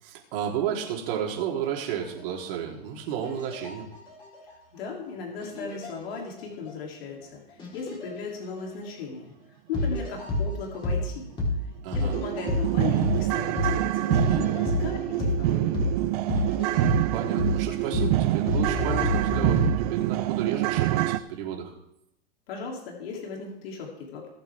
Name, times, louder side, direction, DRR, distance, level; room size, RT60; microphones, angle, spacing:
voice 1, 0.0-3.9 11.8-12.1 17.1-21.7, right 9 dB, 55° right, -1 dB, 3.7 m, -32 dB
sound 1, 2.0-2.3 3.2-4.5 5.4-6.4 6.6-6.7 7.6-8.1 8.6-8.7 9.7-11.0 11.4-11.6 11.9-13.3 13.6-13.8 14.1-15.4 15.7-15.9 16.3-17.6 17.9-18.1 18.5-19.7, left 2 dB, 15° left, 4.0 m, -28 dB
voice 2, 4.4-9.3 9.7-11.3 11.9-15.8 22.5-24.3, left 5 dB, 60° left, -1 dB, 3.4 m, -36 dB
sound 2, 11.2-11.3 11.7-11.8 12.1-21.2, right 16 dB, 35° right, 0.5 m, -26 dB
20.5 x 7.9 x 3.7 m, 0.79 s
supercardioid pair, 150°, 33 cm